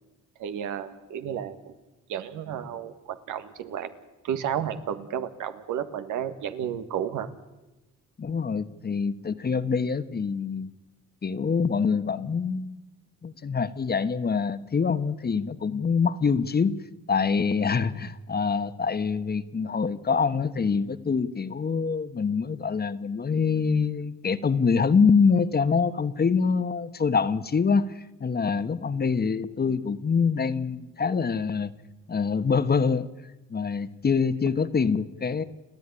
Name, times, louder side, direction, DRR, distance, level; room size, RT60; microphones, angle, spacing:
voice 1, 0.4-1.7 2.1-3.9 4.2-7.3, right 9 dB, 85° right, 10 dB, 1.8 m, -32 dB
voice 2, 8.2-10.7 11.2-12.8 13.2-16.7 17.1-31.7 32.1-33.1 33.5-35.4, left 5 dB, 30° left, 13 dB, 1.2 m, -25 dB
29.5 x 11.0 x 9.9 m, 1.1 s
cardioid pair, 90°, 30 cm